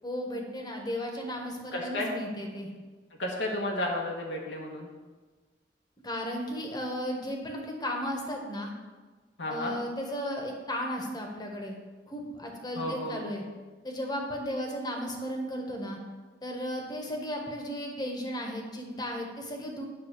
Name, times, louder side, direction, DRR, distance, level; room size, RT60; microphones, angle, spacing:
voice 1, 0.0-2.7 6.0-8.7 9.5-11.8 12.1-13.4 13.8-16.0 16.4-19.8, equal, 25° left, 2 dB, 1.1 m, -35 dB
voice 2, 1.7-2.1 3.2-4.9 9.4-9.8 12.7-13.2, left 1 dB, 80° left, -1 dB, 1.3 m, -32 dB
8.7 x 3.7 x 6.5 m, 1.3 s
head